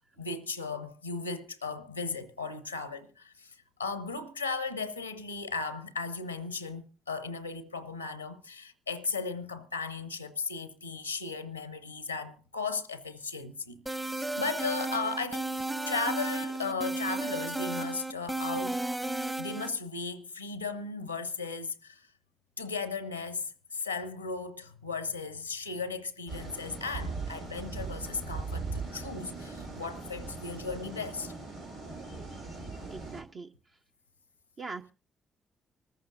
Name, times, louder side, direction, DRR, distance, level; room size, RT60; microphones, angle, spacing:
voice 1, 0.0-13.8 14.1-18.9 19.4-22.1 22.6-31.3, left 4 dB, 90° left, 0.6 m, -36 dB
sound 1, 13.9-19.7, right 2 dB, 15° right, 1.0 m, -33 dB
sound 2, 26.3-33.2, right 3 dB, 85° right, 3.3 m, -39 dB
voice 2, 32.9-33.5 34.6-34.9, right 4 dB, 45° right, 0.7 m, -42 dB
25.5 x 14.0 x 2.5 m
figure-of-eight pair, 40°, 0 cm